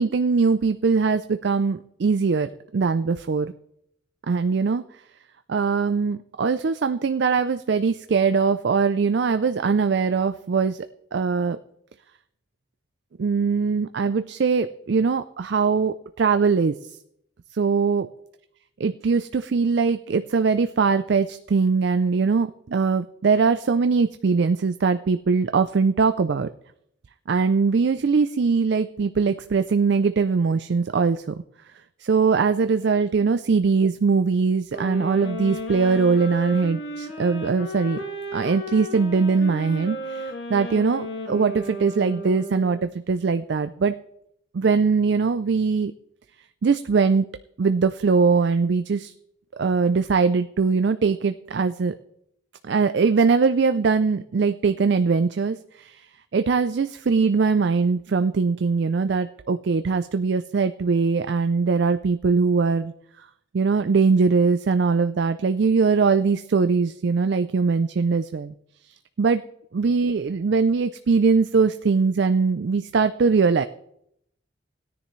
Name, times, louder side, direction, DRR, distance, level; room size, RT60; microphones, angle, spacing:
voice 1, 0.0-3.5 4.3-4.8 5.5-10.9 11.1-11.6 13.2-16.7 17.5-18.1 18.8-26.5 27.3-31.3 32.0-38.0 38.3-43.9 44.5-45.9 46.6-47.3 47.6-49.1 49.6-51.9 52.6-56.1 56.3-62.9 63.5-68.5 69.2-69.4 69.7-73.7, right 5 dB, 55° right, 10 dB, 0.4 m, -21 dB
sound 1, 34.7-42.9, equal, 65° left, 2.1 m, -34 dB
17.0 x 9.9 x 3.1 m, 0.74 s
head